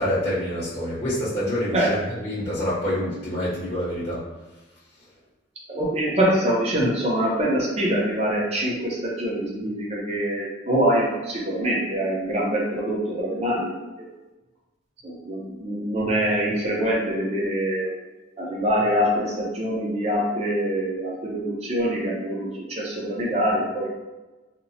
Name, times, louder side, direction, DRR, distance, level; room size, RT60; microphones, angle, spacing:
voice 1, 0.0-4.2, equal, 35° left, -11 dB, 0.7 m, -27 dB
voice 2, 5.7-13.7 14.0-14.1 15.0-17.9 18.4-23.9, equal, 35° right, -3 dB, 0.6 m, -24 dB
2.9 x 2.0 x 2.6 m, 1.1 s
head